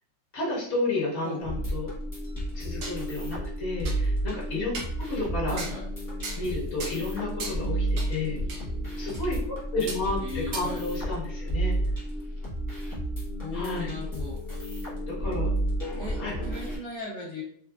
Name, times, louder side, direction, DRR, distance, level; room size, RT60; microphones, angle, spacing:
voice 1, 0.3-1.9 2.5-4.7 5.1-5.6 6.3-8.4 9.0-10.2 10.5-11.8 13.5-13.9 15.1-15.5 16.2-16.3, left 2 dB, 40° left, -6 dB, 1.4 m, -31 dB
sound 1, 1.4-16.8, right 1 dB, 20° left, 0.5 m, -31 dB
sound 2, 2.6-3.0 3.4-3.5 3.9-4.0 4.7-5.0 5.6-5.8 6.2-6.5 6.8-7.0 7.4-7.6 8.0-8.1 8.5-8.6 9.1-9.2 9.9-10.0 10.5-10.6, right 3 dB, 60° right, 0.8 m, -37 dB
voice 2, 5.5-5.8 10.2-10.8 13.4-14.4 16.0-17.4, left 2 dB, 60° left, -6 dB, 1.5 m, -37 dB
3.8 x 2.4 x 2.3 m, 0.64 s
omnidirectional pair, 2.0 m